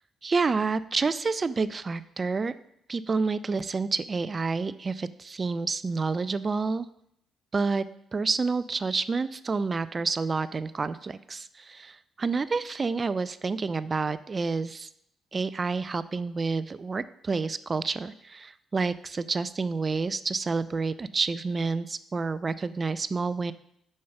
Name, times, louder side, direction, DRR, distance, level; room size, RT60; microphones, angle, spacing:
voice 1, 0.2-2.5 2.9-6.9 7.5-7.8 8.1-14.9 15.3-23.5, right 4 dB, 35° right, 15 dB, 0.3 m, -29 dB
6.4 x 5.5 x 5.8 m, 0.75 s
cardioid pair, 90°, 0 cm